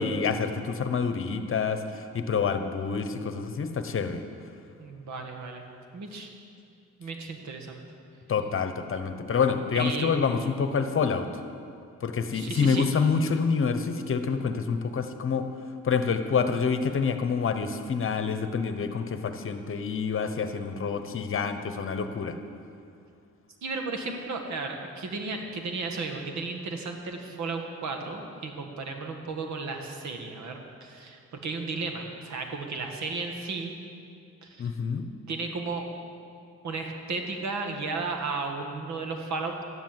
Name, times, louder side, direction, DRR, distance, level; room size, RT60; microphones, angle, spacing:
voice 1, 0.0-4.2 8.3-11.3 12.0-15.5 15.8-22.4 34.6-35.1, left 5 dB, 45° left, 8 dB, 1.1 m, -27 dB
voice 2, 4.8-5.7 5.9-6.3 7.0-7.8 9.8-10.1 12.3-12.9 23.6-33.7 34.4-34.6 35.3-35.8 36.6-39.7, right 3 dB, 65° right, 3 dB, 2.0 m, -34 dB
12.5 x 10.5 x 7.6 m, 2.4 s
cardioid pair, 90°, 30 cm